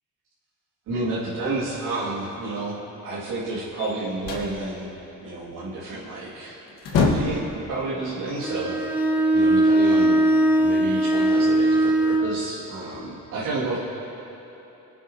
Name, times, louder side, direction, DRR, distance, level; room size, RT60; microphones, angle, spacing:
voice 1, 0.9-4.9 5.2-6.6 6.9-8.9 9.3-10.2 10.5-13.8, right 2 dB, 85° right, -10 dB, 2.4 m, -30 dB
sound 1, 3.8-4.5 6.2-6.3 6.7-7.5, left 4 dB, 80° left, 1.6 m, -24 dB
Bowed string instrument, 8.4-12.4, right 1 dB, 5° right, 1.0 m, -20 dB
24.5 x 8.3 x 2.9 m, 3.0 s
cardioid pair, 80°, 32 cm